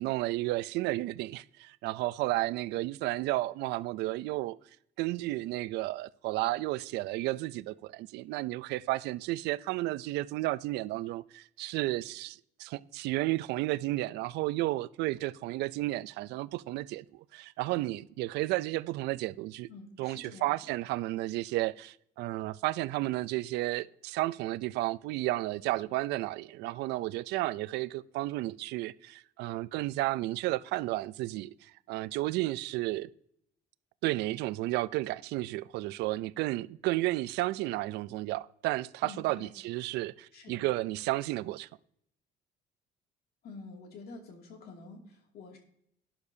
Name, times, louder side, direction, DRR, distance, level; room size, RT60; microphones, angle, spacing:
voice 1, 0.0-4.6 5.0-19.7 20.0-33.1 34.0-41.7, right 18 dB, 85° right, 0.4 m, -32 dB
voice 2, 19.7-20.7 39.0-39.5 40.3-40.6 43.4-45.6, left 3 dB, 70° left, 2.4 m, -48 dB
11.5 x 10.0 x 2.7 m
cardioid pair, 110°, 17 cm